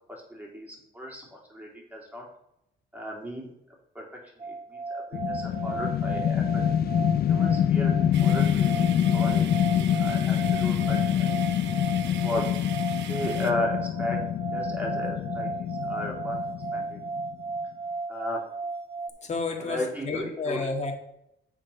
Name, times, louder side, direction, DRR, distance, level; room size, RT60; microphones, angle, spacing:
voice 1, 0.1-2.2 2.9-3.5 3.9-6.6 7.3-9.4 9.7-11.3 12.1-12.5 13.1-14.3 14.5-16.4 16.7-17.0 18.1-18.4 19.6-20.6, left 1 dB, 10° right, -2 dB, 3.2 m, -35 dB
sound 1, 4.4-19.1, right 3 dB, 30° right, 1.0 m, -35 dB
sound 2, 5.1-17.3, left 10 dB, 50° left, 0.4 m, -26 dB
sound 3, 8.1-13.5, right 8 dB, 65° right, 0.8 m, -41 dB
voice 2, 19.2-20.9, left 3 dB, 35° left, 2 dB, 1.9 m, -31 dB
7.5 x 4.7 x 5.7 m, 0.80 s
cardioid pair, 90°, 20 cm